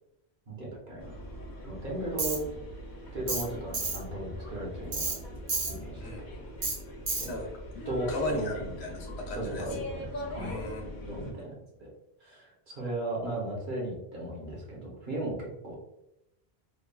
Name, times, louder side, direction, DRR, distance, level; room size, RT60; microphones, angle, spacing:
voice 1, 0.5-1.0 1.6-2.4 3.1-5.1 5.7-6.4 7.2-7.3 7.9-8.7 9.3-10.7 11.1-11.9 12.2-15.8, right 1 dB, 55° right, -4 dB, 1.0 m, -36 dB
sound 1, 1.0-11.3, left 1 dB, 50° left, 0.7 m, -41 dB
Tools, 2.2-2.4 3.3-3.5 3.7-4.0 4.9-5.2 5.5-5.7 6.6-6.8 7.1-7.3, right 3 dB, 80° right, 1.1 m, -30 dB
voice 2, 8.1-9.7 10.4-11.5, left 1 dB, 85° left, 1 dB, 0.9 m, -36 dB
3.1 x 2.2 x 2.2 m, 0.87 s
omnidirectional pair, 1.1 m